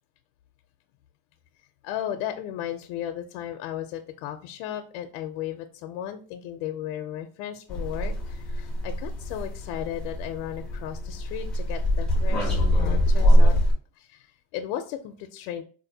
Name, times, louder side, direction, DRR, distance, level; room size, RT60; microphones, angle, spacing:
voice 1, 1.8-13.5 14.0-15.6, left 11 dB, 80° left, 6 dB, 0.5 m, -35 dB
sound 1, 7.7-13.7, equal, ahead, 0.5 m, -23 dB
4.1 x 2.5 x 2.6 m, 0.40 s
cardioid pair, 180°, 35 cm